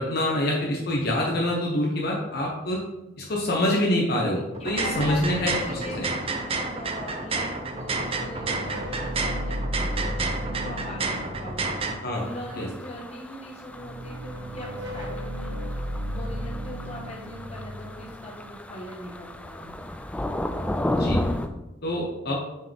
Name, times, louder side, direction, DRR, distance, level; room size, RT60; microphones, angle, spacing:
voice 1, 0.0-2.8 3.2-6.0 12.0-12.3 12.5-12.7 21.0-21.2 21.8-22.4, left 1 dB, 60° left, -2 dB, 1.1 m, -26 dB
sound 1, 4.5-11.9, right 3 dB, 30° right, 0.6 m, -30 dB
voice 2, 4.6-11.7 12.1-19.9, left 1 dB, 35° left, -2 dB, 1.3 m, -40 dB
sound 2, 4.9-7.1 7.5-12.6 13.6-19.0, equal, 70° right, 1.7 m, -35 dB
sound 3, 12.1-21.5, left 1 dB, 5° left, 0.3 m, -33 dB
6.4 x 4.7 x 3.5 m, 0.93 s
head